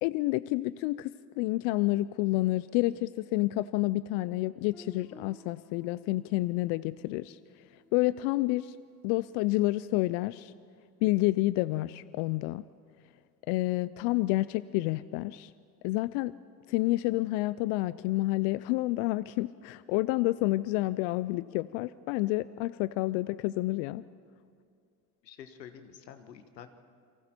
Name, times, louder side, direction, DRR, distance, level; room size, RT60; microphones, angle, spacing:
voice 1, 0.0-7.4 7.9-8.8 9.0-10.5 11.0-12.6 13.5-15.5 15.8-16.3 16.7-24.0, left 19 dB, 60° left, 17 dB, 0.6 m, -29 dB
Guitar, 4.7-9.4, left 1 dB, 5° left, 2.2 m, -57 dB
voice 2, 25.2-26.7, left 8 dB, 90° left, 8 dB, 1.4 m, -48 dB
30.0 x 23.5 x 4.4 m, 2.3 s
hypercardioid pair, 70°, 48 cm